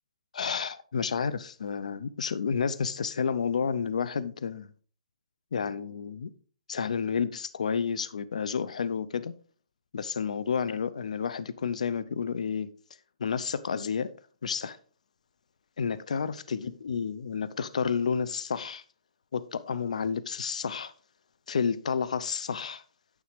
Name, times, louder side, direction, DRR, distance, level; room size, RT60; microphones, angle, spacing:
voice 1, 0.3-4.7 5.5-6.3 6.7-9.4 9.9-12.7 13.2-14.1 14.4-14.8 15.8-18.8 19.3-20.9 21.5-22.8, left 6 dB, 80° left, 0.5 m, -30 dB
9.6 x 6.1 x 3.3 m
hypercardioid pair, 160°, 4 cm